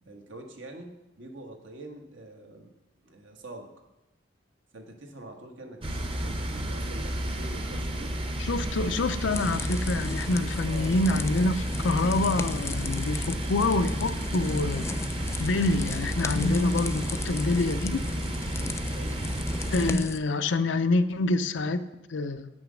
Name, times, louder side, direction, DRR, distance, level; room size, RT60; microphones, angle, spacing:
voice 1, 0.0-2.7 3.0-3.7 4.7-8.2 8.8-9.1 10.6-11.0 15.7-15.8 18.9-19.2, right 2 dB, 75° right, 3 dB, 1.4 m, -45 dB
sound 1, 5.8-19.9, right 1 dB, 30° right, 0.8 m, -32 dB
voice 2, 8.4-14.9 15.4-18.0 19.7-21.8 22.1-22.5, left 2 dB, 75° left, 10 dB, 0.5 m, -26 dB
sound 2, 9.3-20.2, left 3 dB, 15° left, 0.3 m, -36 dB
8.5 x 6.2 x 6.2 m, 0.96 s
head